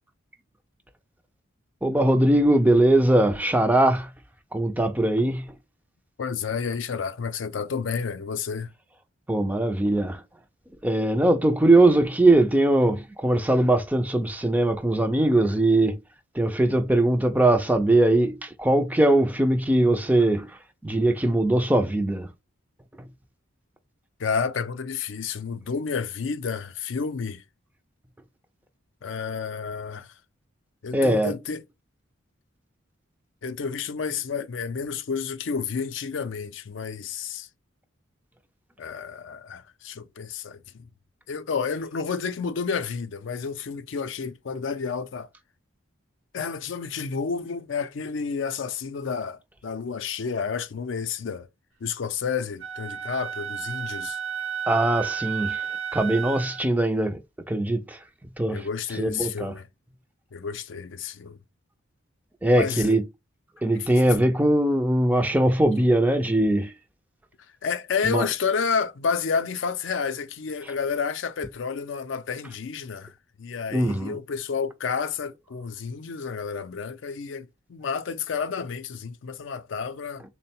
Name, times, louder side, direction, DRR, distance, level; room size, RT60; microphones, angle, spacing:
voice 1, 1.8-4.1 4.5-5.5 9.3-10.2 10.8-16.0 16.3-22.3 23.0-23.1 30.9-31.3 54.7-55.7 55.9-57.2 57.5-58.0 58.4-59.5 62.4-63.0 63.6-66.7 68.1-68.3 73.7-74.2, right 1 dB, 10° right, 0.4 m, -21 dB
voice 2, 6.2-8.7 24.2-27.4 29.0-30.1 30.8-31.6 33.4-37.5 38.8-40.9 41.3-45.3 46.3-51.5 51.8-54.2 58.5-59.7 60.3-61.4 62.6-63.0 63.7-63.9 67.6-80.2, left 5 dB, 65° left, 0.4 m, -30 dB
Wind instrument woodwind instrument, 52.6-56.7, right 8 dB, 65° right, 0.9 m, -32 dB
3.7 x 2.1 x 4.2 m
head